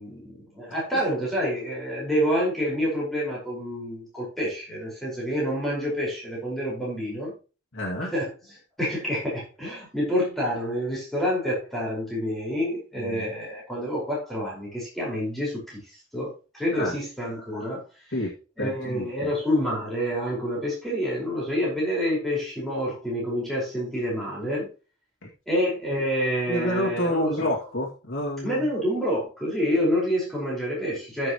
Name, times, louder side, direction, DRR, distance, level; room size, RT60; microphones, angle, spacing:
voice 1, 0.0-7.3 8.1-8.3 8.8-18.1 18.6-24.7 25.5-27.5 28.4-31.3, equal, ahead, -5 dB, 5.1 m, -28 dB
voice 2, 7.7-8.1 13.0-13.3 16.7-16.9 18.1-18.3 18.6-19.1 26.5-28.6, left 1 dB, 60° left, -2 dB, 2.3 m, -28 dB
14.0 x 6.8 x 3.1 m, 0.33 s
head